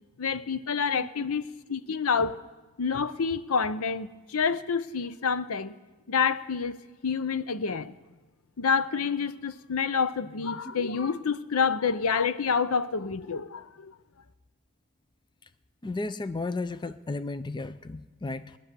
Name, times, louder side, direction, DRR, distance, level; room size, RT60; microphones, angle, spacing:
voice 1, 0.2-2.4 2.8-5.8 6.1-6.8 7.0-7.9 8.6-13.9, left 5 dB, 70° left, 0.7 m, -28 dB
voice 2, 15.8-18.6, left 3 dB, 20° left, 0.4 m, -34 dB
20.0 x 10.5 x 6.8 m
head